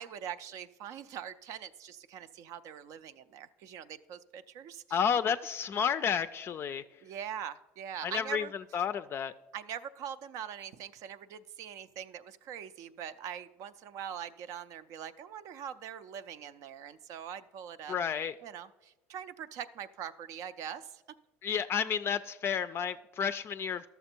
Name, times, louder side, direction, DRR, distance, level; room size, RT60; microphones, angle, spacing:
voice 1, 0.0-5.0 7.0-8.5 9.5-18.1 18.4-21.0 21.5-21.6, right 9 dB, 65° right, 12 dB, 0.4 m, -43 dB
voice 2, 4.9-6.8 8.0-9.3 17.9-18.3 21.4-23.9, left 7 dB, 40° left, 12 dB, 0.3 m, -31 dB
12.0 x 6.8 x 4.4 m, 1.0 s
supercardioid pair, 95°, 6 cm